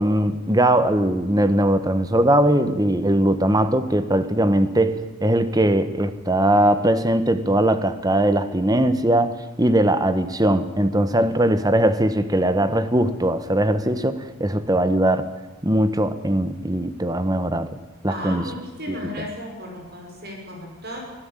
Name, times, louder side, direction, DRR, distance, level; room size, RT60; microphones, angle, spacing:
voice 1, 0.0-15.3 15.6-17.7 18.0-18.4 18.9-19.0, right 1 dB, 15° right, 11 dB, 1.1 m, -20 dB
voice 2, 18.1-21.0, left 1 dB, 45° right, 1 dB, 6.0 m, -35 dB
24.5 x 16.0 x 9.0 m, 1.2 s
head